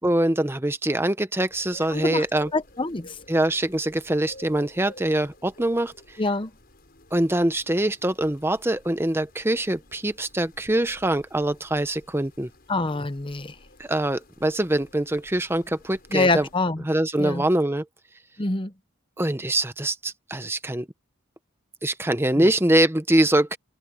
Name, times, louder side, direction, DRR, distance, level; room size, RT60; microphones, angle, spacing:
voice 1, 0.0-2.5 3.3-6.2 7.1-12.5 13.8-16.5 16.8-17.8 19.2-20.9 21.8-23.6, right 1 dB, 10° right, 0.9 m, -24 dB
sound 1, 1.5-16.6, left 1 dB, 45° left, 6.6 m, -51 dB
voice 2, 1.9-2.3 2.5-3.2 6.2-6.5 12.7-13.6 16.1-16.8 17.2-17.4 18.4-18.7 22.4-22.5, left 2 dB, 25° left, 0.8 m, -25 dB
head